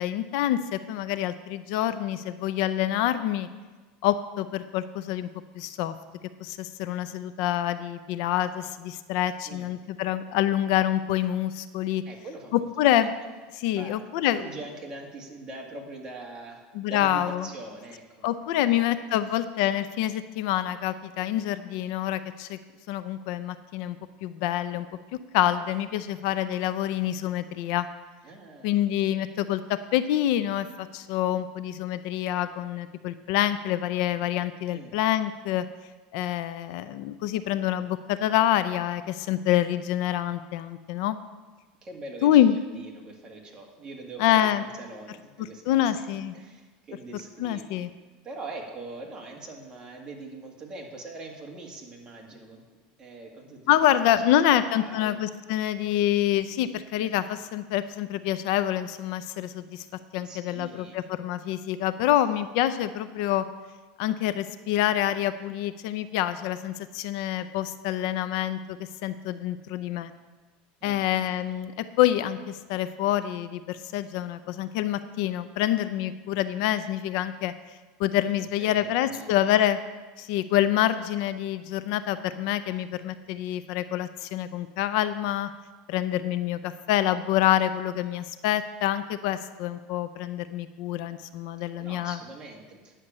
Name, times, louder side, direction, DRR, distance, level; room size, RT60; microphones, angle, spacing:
voice 1, 0.0-3.5 4.0-5.3 5.5-5.9 6.4-12.0 12.5-13.1 13.5-14.4 16.7-17.5 18.2-22.6 22.9-24.0 24.2-24.9 25.3-27.9 28.6-35.7 36.1-41.2 42.2-42.6 44.2-44.6 45.7-46.3 47.4-47.9 53.7-59.8 60.1-63.4 64.0-68.8 69.0-70.1 70.8-77.5 78.0-79.8 80.2-85.5 85.9-92.2, left 12 dB, 60° left, 12 dB, 0.5 m, -26 dB
voice 2, 12.0-13.1 13.7-18.3 18.5-19.0 28.2-29.3 34.7-35.0 41.8-42.4 42.7-46.0 46.3-47.7 48.2-52.6 53.0-53.9 54.4-55.2 60.2-61.0 70.8-71.5 78.3-79.5 91.8-92.9, right 2 dB, 20° right, -1 dB, 1.9 m, -43 dB
9.7 x 6.6 x 8.6 m, 1.3 s
supercardioid pair, 155°, 4 cm